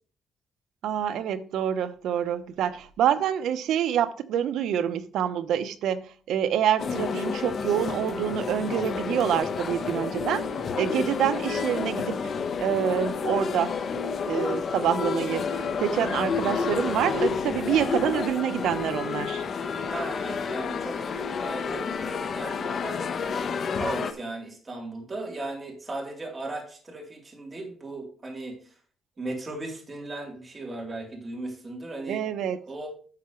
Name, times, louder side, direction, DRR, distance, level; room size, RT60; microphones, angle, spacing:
voice 1, 0.8-10.4 10.8-12.2 12.6-13.8 14.3-19.5 32.1-32.6, right 9 dB, 80° right, 1.0 m, -27 dB
sound 1, 6.8-24.1, left 5 dB, 45° left, 1.1 m, -30 dB
voice 2, 19.9-21.0 21.4-23.0 23.3-28.6 29.2-32.3 32.7-32.9, right 2 dB, 25° right, 3.5 m, -36 dB
12.0 x 6.8 x 3.2 m
cardioid pair, 115°, 0 cm